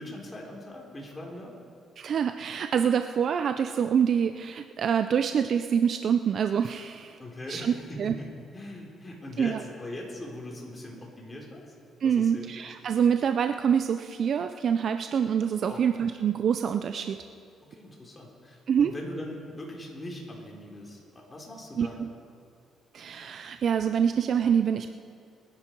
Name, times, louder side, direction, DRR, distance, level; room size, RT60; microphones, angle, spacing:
voice 1, 0.0-1.5 7.2-11.7 12.0-12.5 15.6-15.8 17.6-22.1, left 1 dB, 25° left, -1 dB, 3.7 m, -41 dB
voice 2, 2.0-7.2 7.5-7.7 8.0-8.1 9.4-9.6 12.0-17.2 18.7-18.9 21.8-22.1 22.9-24.9, right 7 dB, 60° right, 9 dB, 0.5 m, -26 dB
23.0 x 10.5 x 4.6 m, 2.3 s
cardioid pair, 90°, 0 cm